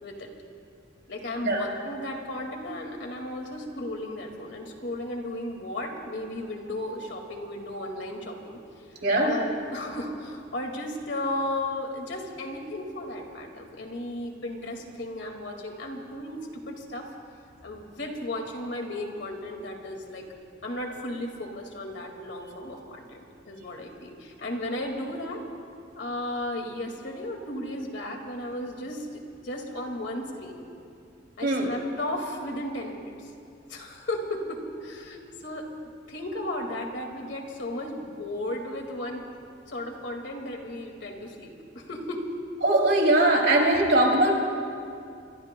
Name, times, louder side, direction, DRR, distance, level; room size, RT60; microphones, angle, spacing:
voice 1, 1.1-8.6 9.1-17.1 17.6-20.3 20.6-25.4 26.0-30.6 31.4-33.3 33.7-35.7 36.1-39.2 39.7-42.2, left 1 dB, 65° left, 2 dB, 2.1 m, -35 dB
voice 2, 9.0-9.3 31.4-31.7 42.6-44.4, right 1 dB, 60° right, 0 dB, 3.0 m, -21 dB
26.5 x 23.5 x 2.2 m, 2.4 s
head